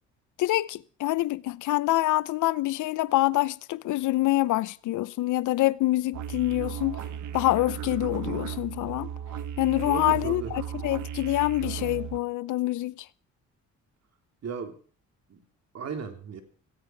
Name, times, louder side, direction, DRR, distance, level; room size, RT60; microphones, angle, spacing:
voice 1, 0.4-7.0 7.3-9.1 9.6-13.1, left 17 dB, 80° left, 0.7 m, -26 dB
Didgeridoo and shaker - D key, 6.1-12.2, right 9 dB, 75° right, 1.4 m, -35 dB
voice 2, 9.8-10.5 14.4-14.8 15.3-15.4 15.7-16.4, right 6 dB, 60° right, 3.5 m, -35 dB
17.5 x 16.5 x 4.7 m
cardioid pair, 90°, 30 cm